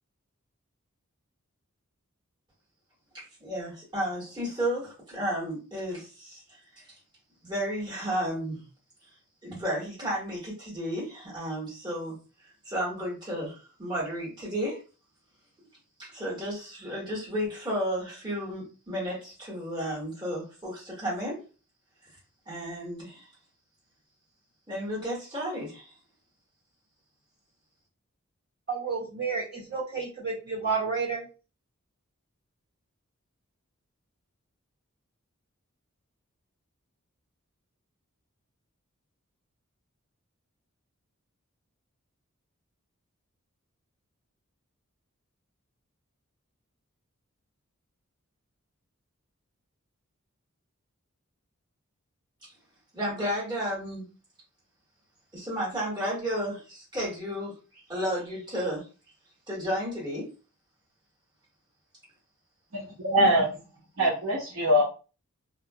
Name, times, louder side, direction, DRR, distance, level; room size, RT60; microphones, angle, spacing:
voice 1, 3.1-6.4 6.8-6.9 7.4-8.6 9.4-12.2 12.6-14.8 16.0-21.4 22.5-23.3 24.7-25.9 52.4-52.5 52.9-54.1 55.3-58.9 59.5-60.3, equal, 20° right, -7 dB, 1.4 m, -32 dB
voice 2, 28.7-31.3, right 5 dB, 50° right, -6 dB, 1.3 m, -31 dB
voice 3, 62.7-63.5 64.0-64.8, equal, 65° right, -5 dB, 0.6 m, -23 dB
2.4 x 2.0 x 2.6 m, 0.34 s
head